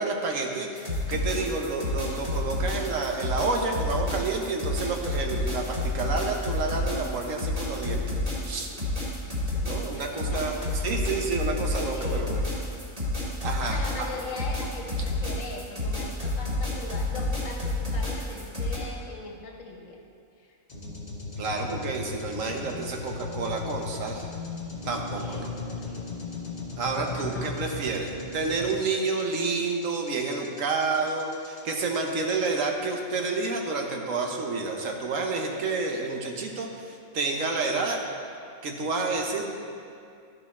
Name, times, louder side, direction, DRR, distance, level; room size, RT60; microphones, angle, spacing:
voice 1, 0.0-8.2 8.4-8.7 9.6-12.4 13.4-14.1 21.4-24.3 24.8-25.5 26.8-38.0 38.6-39.5, right 3 dB, 75° right, 2 dB, 1.3 m, -29 dB
sound 1, 0.8-18.8, left 2 dB, 25° right, 2.1 m, -29 dB
voice 2, 9.9-11.2 11.9-12.5 13.3-20.0 20.4-20.5 25.1-26.2 27.1-27.7, left 3 dB, 70° left, 1 dB, 1.4 m, -41 dB
sound 2, 20.7-32.6, left 3 dB, 35° left, 1.1 m, -37 dB
12.0 x 5.4 x 4.2 m, 2.4 s
omnidirectional pair, 1.4 m